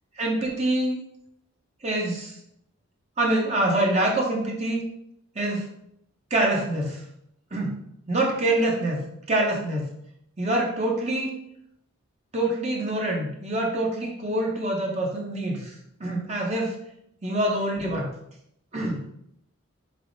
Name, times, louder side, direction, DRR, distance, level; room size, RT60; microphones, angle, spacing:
voice 1, 0.2-1.0 1.8-2.4 3.2-4.8 5.4-5.7 6.3-7.0 7.5-7.8 8.1-9.9 10.4-11.3 12.3-15.7 16.0-16.8 17.2-18.1 18.7-19.1, right 1 dB, 30° right, -1 dB, 0.7 m, -25 dB
4.2 x 3.3 x 3.8 m, 0.75 s
head